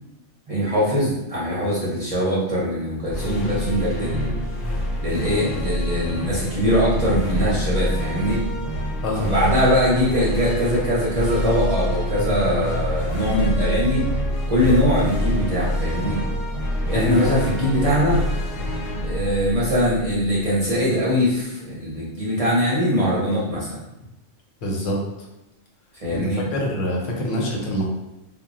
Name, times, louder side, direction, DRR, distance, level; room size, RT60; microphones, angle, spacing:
voice 1, 0.5-4.3 5.0-8.4 9.2-14.1 14.5-16.2 16.8-18.2 19.0-23.8 26.0-26.4, equal, 40° right, -8 dB, 0.6 m, -22 dB
sound 1, 3.0-20.5, equal, 55° left, 0.9 m, -26 dB
voice 2, 9.0-9.3 16.9-17.2 24.6-25.0 26.1-26.2 26.5-27.9, equal, 85° left, -1 dB, 1.1 m, -25 dB
2.2 x 2.1 x 3.7 m, 0.94 s
omnidirectional pair, 1.3 m